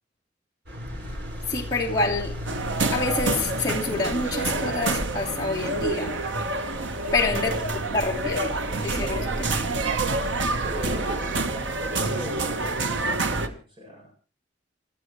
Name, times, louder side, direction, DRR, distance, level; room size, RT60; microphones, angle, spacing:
sound 1, 0.7-13.5, equal, 65° right, 5.2 m, -37 dB
voice 1, 1.5-2.4 2.8-6.2 7.1-9.7, left 3 dB, 20° left, 2.9 m, -27 dB
sound 2, 2.5-13.5, right 3 dB, 85° right, 1.3 m, -28 dB
voice 2, 7.4-7.8 10.4-14.1, equal, 25° right, 7.5 m, -38 dB
28.0 x 13.0 x 3.1 m
head